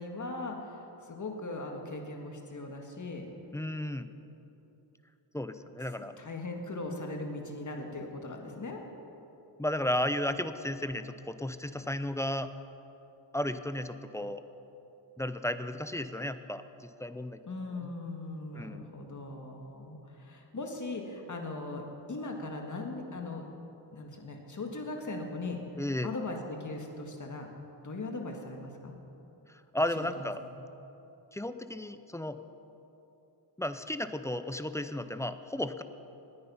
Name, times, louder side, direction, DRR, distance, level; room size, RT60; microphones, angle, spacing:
voice 1, 0.0-3.3 6.0-8.8 17.5-23.5 23.9-25.6 26.0-27.5 27.8-28.9 30.0-30.3, left 2 dB, 40° left, 2 dB, 1.9 m, -39 dB
voice 2, 3.5-4.1 5.3-6.1 9.6-12.5 13.3-14.4 15.2-17.4 18.5-18.9 25.8-26.1 29.7-30.4 31.3-32.4 33.6-35.8, left 1 dB, 5° left, 11 dB, 0.4 m, -34 dB
19.5 x 9.5 x 5.6 m, 3.0 s
wide cardioid pair, 120°, 48 cm